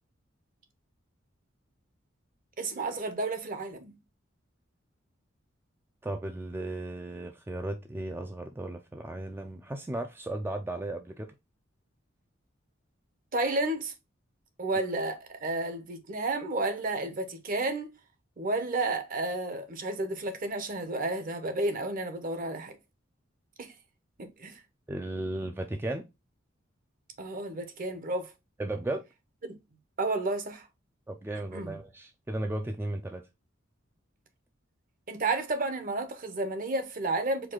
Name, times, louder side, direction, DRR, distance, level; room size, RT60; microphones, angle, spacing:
voice 1, 2.6-3.9 13.3-13.9 14.6-17.9 18.4-22.8 23.6-23.7 24.2-24.6 27.2-28.3 29.4-29.5 30.0-30.7 31.5-31.8 35.1-37.5, right 2 dB, 45° right, 0.8 m, -31 dB
voice 2, 6.0-11.3 24.9-26.0 28.6-29.0 31.1-33.2, right 1 dB, 10° right, 0.3 m, -35 dB
4.6 x 2.4 x 3.8 m
head